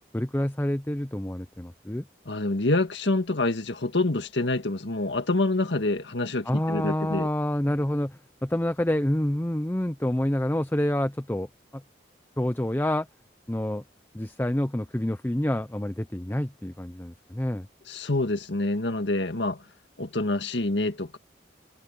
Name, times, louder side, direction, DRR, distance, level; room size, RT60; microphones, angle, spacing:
voice 1, 0.1-2.1 6.5-11.5 11.7-11.8 12.4-13.1 13.5-13.8 14.1-17.7, left 1 dB, 10° left, 0.6 m, -27 dB
voice 2, 2.3-7.3 17.9-19.6 20.0-21.2, left 2 dB, 80° left, 1.8 m, -26 dB
head